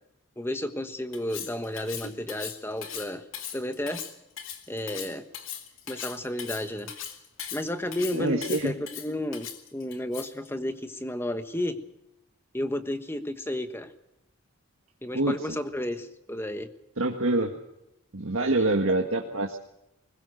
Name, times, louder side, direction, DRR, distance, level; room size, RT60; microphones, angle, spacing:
voice 1, 0.4-3.2 3.5-4.1 4.7-5.3 5.9-6.9 7.5-11.8 12.5-13.9 15.0-16.7 18.4-18.8, left 1 dB, 10° left, 9 dB, 1.3 m, -32 dB
Cutlery silverware, 1.1-10.5, left 9 dB, 65° left, 2.4 m, -39 dB
voice 2, 8.1-8.7 15.1-15.4 17.0-17.5 18.1-19.6, right 2 dB, 70° right, 2 dB, 1.7 m, -25 dB
21.5 x 20.0 x 6.6 m, 0.87 s
head